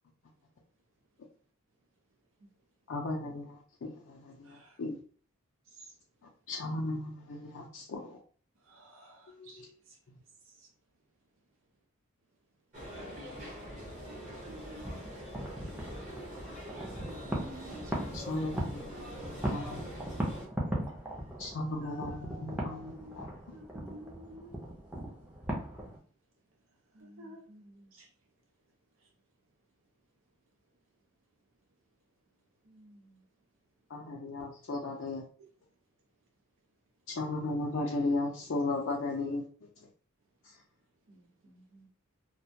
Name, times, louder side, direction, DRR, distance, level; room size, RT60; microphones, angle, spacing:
voice 1, 2.9-5.0 6.5-8.2 9.3-9.7 18.1-19.9 21.4-23.6 33.9-35.2 37.1-39.4, left 2 dB, 60° left, 0.4 m, -36 dB
voice 2, 4.4-4.8 5.8-5.9 8.7-9.7 10.6-10.7 13.2-13.5 14.0-14.9 16.7-16.8 17.0-18.2 21.8-23.2 23.5-24.6 27.0-27.4 27.9-28.1, equal, 65° right, 0.5 m, -50 dB
sound 1, 12.7-20.5, equal, 35° right, 0.8 m, -44 dB
sound 2, 14.4-26.0, right 1 dB, 10° right, 0.5 m, -39 dB
voice 3, 26.9-27.9 32.6-33.2 41.1-41.9, right 1 dB, 90° right, 0.9 m, -58 dB
2.2 x 2.1 x 2.7 m
head